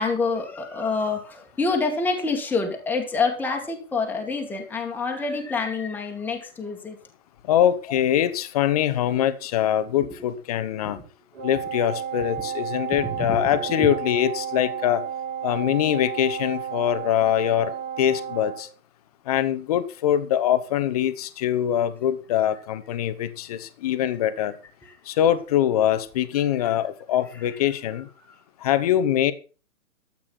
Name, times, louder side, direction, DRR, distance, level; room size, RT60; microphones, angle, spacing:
voice 1, 0.0-7.0 7.9-8.0 10.0-10.1 10.8-11.0 13.0-13.9 24.8-24.9 26.6-26.7 27.7-27.8 28.2-28.3, left 4 dB, 5° left, 1.8 m, -27 dB
voice 2, 7.4-11.0 11.4-15.0 15.4-18.7 19.3-24.6 25.1-28.1 28.6-29.3, left 11 dB, 25° left, 1.0 m, -23 dB
Wind instrument woodwind instrument, 11.4-18.7, right 8 dB, 60° right, 3.8 m, -32 dB
12.5 x 8.8 x 6.1 m
figure-of-eight pair, 135°, 43 cm